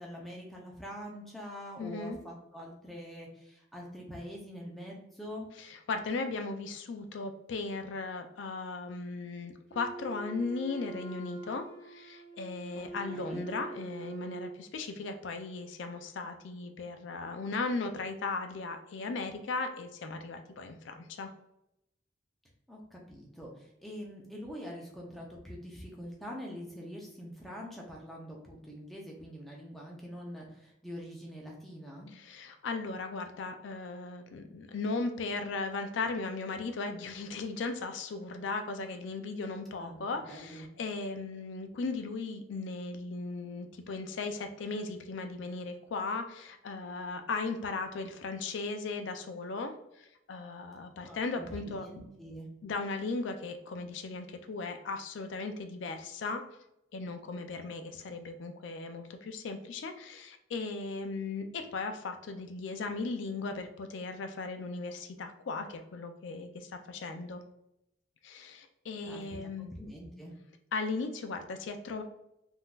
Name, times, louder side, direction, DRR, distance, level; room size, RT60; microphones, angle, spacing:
voice 1, 0.0-5.5 12.7-13.5 22.7-32.1 39.8-40.7 51.0-52.5 69.0-69.2 69.6-70.3, equal, ahead, -3 dB, 0.6 m, -44 dB
voice 2, 1.8-2.2 5.6-21.3 32.1-51.9 52.6-56.4 56.9-67.4 68.2-69.7 70.7-72.0, left 3 dB, 75° left, 7 dB, 0.4 m, -37 dB
Wind instrument woodwind instrument, 9.7-14.6, right 3 dB, 75° right, 1.3 m, -44 dB
3.6 x 2.6 x 2.3 m, 0.84 s
head